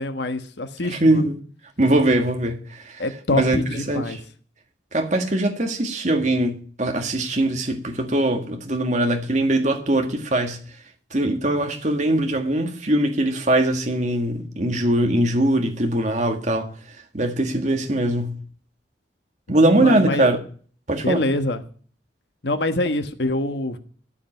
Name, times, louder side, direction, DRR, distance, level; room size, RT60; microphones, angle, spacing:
voice 1, 0.0-1.2 3.0-4.2 19.8-20.2 21.0-21.6 22.4-23.8, left 2 dB, 70° left, 1.3 m, -25 dB
voice 2, 1.0-1.3 1.8-3.0 3.3-3.6 3.9-4.2 4.9-10.6 11.1-16.7 17.1-18.4 19.5-20.4 20.9-21.2, right 1 dB, 40° right, 1.7 m, -21 dB
14.0 x 5.4 x 8.8 m
head